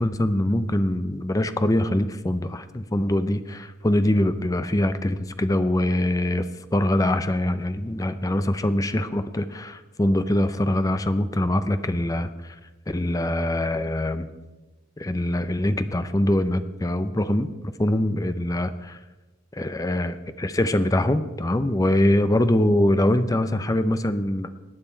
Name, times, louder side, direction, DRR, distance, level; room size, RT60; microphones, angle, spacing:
voice 1, 0.0-12.6 12.9-14.3 15.0-17.5 17.8-19.0 19.5-24.5, left 1 dB, 15° left, 11 dB, 0.5 m, -23 dB
17.0 x 9.1 x 4.5 m, 1.1 s
head